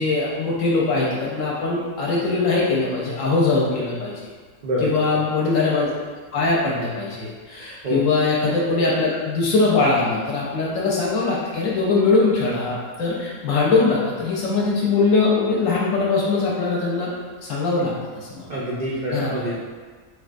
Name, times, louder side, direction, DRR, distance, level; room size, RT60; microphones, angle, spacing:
voice 1, 0.0-4.1 4.8-5.9 6.3-17.1 17.4-18.4 19.1-19.3, left 3 dB, 75° left, -5 dB, 0.9 m, -21 dB
voice 2, 4.6-5.2 7.8-8.0 18.5-19.5, equal, 80° right, -7 dB, 0.4 m, -26 dB
4.2 x 2.2 x 2.5 m, 1.5 s
omnidirectional pair, 1.5 m